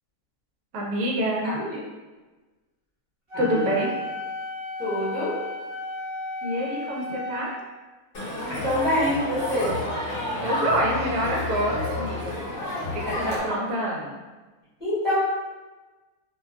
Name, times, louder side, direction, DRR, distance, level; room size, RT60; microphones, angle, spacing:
voice 1, 0.7-1.6 3.4-3.9 6.4-7.5 10.4-12.4 12.9-14.2, equal, 70° right, -2 dB, 0.9 m, -27 dB
voice 2, 1.4-1.8 3.3-3.7 4.8-5.4 8.6-9.7 12.3-12.4 13.1-13.4 14.8-15.2, left 1 dB, ahead, -14 dB, 1.0 m, -26 dB
Wind instrument woodwind instrument, 3.3-7.5, left 2 dB, 45° right, 1.0 m, -34 dB
Crowd, 8.1-13.4, left 1 dB, 45° left, 0.9 m, -30 dB
2.6 x 2.2 x 2.3 m, 1.2 s
omnidirectional pair, 1.6 m